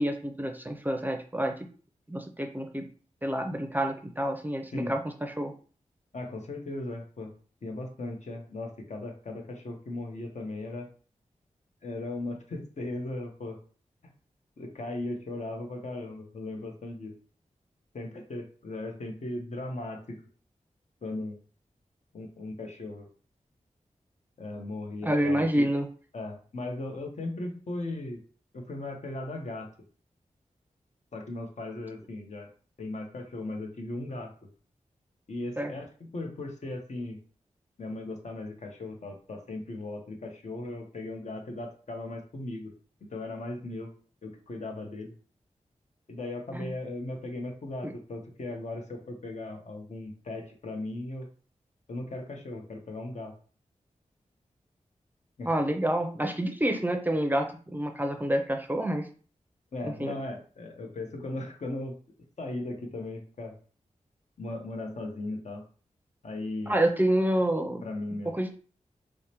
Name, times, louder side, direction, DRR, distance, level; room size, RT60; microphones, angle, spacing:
voice 1, 0.0-1.6 2.1-2.9 3.2-5.5 25.0-25.9 35.6-35.7 46.5-46.7 47.8-47.9 55.5-59.1 59.8-60.2 66.7-67.8 68.3-68.6, right 1 dB, 15° right, 5 dB, 0.5 m, -28 dB
voice 2, 6.1-7.3 7.6-10.9 11.8-13.6 14.6-17.2 17.9-20.2 21.0-21.3 22.1-23.1 24.4-25.7 26.1-28.2 28.5-29.7 31.1-32.5 32.8-34.5 35.3-37.2 37.8-42.7 43.0-43.9 44.2-45.1 46.1-51.3 51.9-53.3 55.4-55.5 59.7-62.0 62.4-63.6 64.4-65.6 66.2-66.8 67.8-68.3, left 2 dB, 65° left, 3 dB, 0.9 m, -37 dB
4.6 x 2.1 x 2.9 m, 0.40 s
wide cardioid pair, 70°, 13 cm